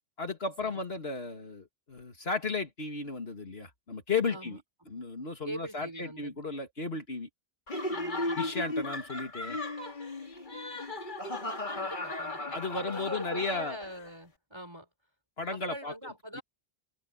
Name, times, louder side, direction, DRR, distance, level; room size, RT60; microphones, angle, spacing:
voice 1, 0.2-4.6 4.9-7.3 8.4-9.6 12.5-13.8 15.4-15.9 16.3-16.4, left 4 dB, 65° left, 2.5 m, -34 dB
voice 2, 5.4-6.4 7.9-8.6 11.7-14.9 15.5-16.4, equal, 25° right, 4.6 m, -43 dB
Laughter, 7.7-14.0, left 2 dB, 45° left, 2.4 m, -36 dB
omnidirectional pair, 1.1 m